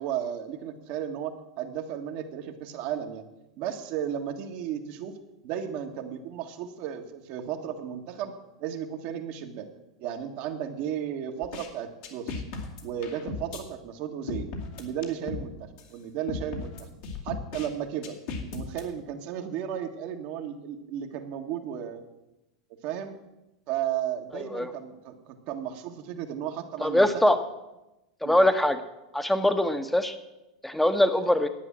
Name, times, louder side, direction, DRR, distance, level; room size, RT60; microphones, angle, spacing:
voice 1, 0.0-3.2 3.6-5.2 5.4-8.3 8.6-9.7 10.0-12.4 12.8-14.5 14.8-16.9 17.2-18.2 18.5-22.1 22.7-23.2 23.7-27.4 28.2-28.4, right 9 dB, 55° right, 4 dB, 1.6 m, -34 dB
sound 1, 11.4-11.7 12.0-13.6 14.3-15.5 15.8-15.9 16.3-17.7 18.0-18.8, left 4 dB, 60° left, 2.6 m, -36 dB
voice 2, 24.3-24.7 26.8-27.4 28.2-28.8 29.1-30.1 30.6-31.5, left 1 dB, 5° left, 8 dB, 1.3 m, -22 dB
11.0 x 9.0 x 7.5 m, 0.95 s
hypercardioid pair, 95°, 3 cm